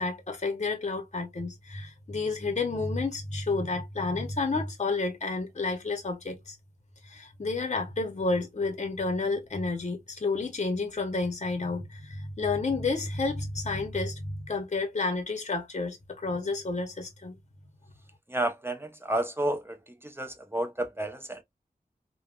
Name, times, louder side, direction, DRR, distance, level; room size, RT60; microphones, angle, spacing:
voice 1, 0.0-6.6 7.0-17.3, left 3 dB, 45° left, 0.8 m, -30 dB
voice 2, 18.3-21.4, right 1 dB, 15° right, 0.6 m, -31 dB
3.4 x 2.2 x 2.3 m
wide cardioid pair, 65°, 16 cm